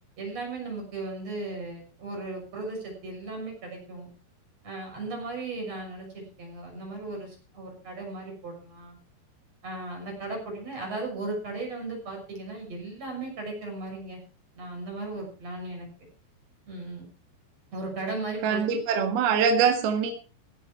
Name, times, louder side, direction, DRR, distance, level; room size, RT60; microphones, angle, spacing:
voice 1, 0.2-4.1 4.6-9.0 9.6-14.2 14.6-15.9 16.7-17.1 17.7-18.8, right 2 dB, 35° right, 1 dB, 7.5 m, -36 dB
voice 2, 18.4-20.1, right 6 dB, 65° right, 5 dB, 3.4 m, -23 dB
16.0 x 11.5 x 4.6 m, 0.36 s
omnidirectional pair, 5.0 m